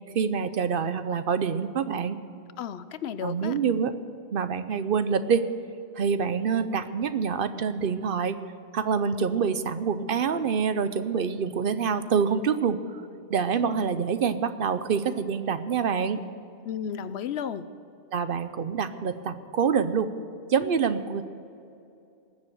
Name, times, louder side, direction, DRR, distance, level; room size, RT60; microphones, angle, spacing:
voice 1, 0.1-2.2 3.2-3.9 4.3-5.4 6.0-8.4 8.7-13.0 13.3-16.2 18.1-20.1 20.5-21.2, right 6 dB, 60° right, 11 dB, 0.9 m, -26 dB
voice 2, 2.6-3.6 16.6-17.6, left 8 dB, 85° left, 14 dB, 0.9 m, -33 dB
19.5 x 7.4 x 7.8 m, 2.6 s
omnidirectional pair, 1.1 m